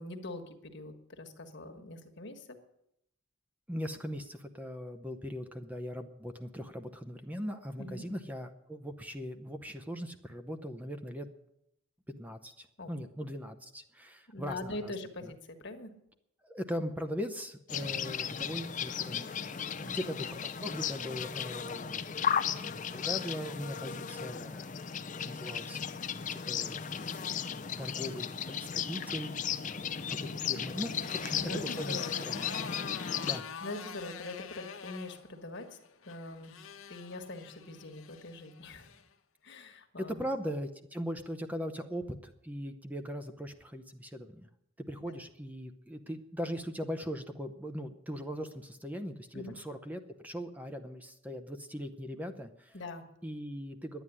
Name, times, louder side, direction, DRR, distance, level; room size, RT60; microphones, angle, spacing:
voice 1, 0.0-2.6 7.8-8.0 12.8-13.0 14.3-15.9 19.8-20.1 31.1-32.3 32.9-33.2 33.6-35.7 36.0-36.6 36.9-38.9 39.4-40.3 45.0-45.2 49.3-49.5 52.7-53.0, left 2 dB, 60° left, 5 dB, 1.5 m, -43 dB
voice 2, 3.7-11.3 12.1-14.9 15.2-15.3 16.4-25.8 26.3-27.3 27.8-32.4 33.3-33.4 40.0-44.5 44.8-52.8 53.2-54.0, equal, 10° right, 7 dB, 0.7 m, -40 dB
sound 1, 17.7-33.4, left 7 dB, 40° left, 0.6 m, -35 dB
Motorcycle, 29.7-39.1, left 6 dB, 80° left, 1.1 m, -47 dB
11.0 x 9.3 x 9.9 m, 0.79 s
head